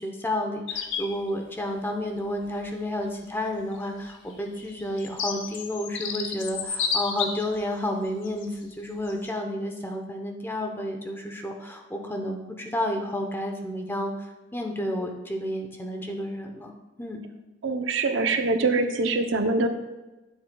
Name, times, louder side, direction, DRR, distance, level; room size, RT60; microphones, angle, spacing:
voice 1, 0.0-16.7 17.0-17.2, left 1 dB, 10° left, 2 dB, 0.8 m, -31 dB
sound 1, 0.7-1.1 2.6-2.7 3.9-7.6 8.2-8.5 9.1-9.3, left 6 dB, 65° left, 0.8 m, -31 dB
voice 2, 17.6-19.7, right 3 dB, 75° right, 7 dB, 0.7 m, -24 dB
11.0 x 7.4 x 2.3 m, 1.1 s
head